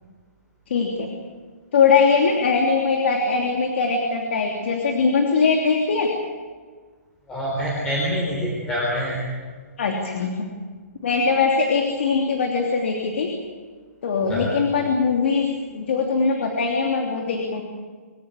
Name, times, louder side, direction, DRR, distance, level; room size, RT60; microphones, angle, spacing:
voice 1, 0.7-1.1 1.7-6.1 9.8-10.5 11.0-13.3 14.0-17.6, left 5 dB, 45° left, 2 dB, 3.1 m, -21 dB
voice 2, 7.3-9.2 14.3-14.4, equal, 10° left, -5 dB, 3.6 m, -25 dB
27.0 x 15.5 x 8.5 m, 1.5 s
hypercardioid pair, 175°, 9 cm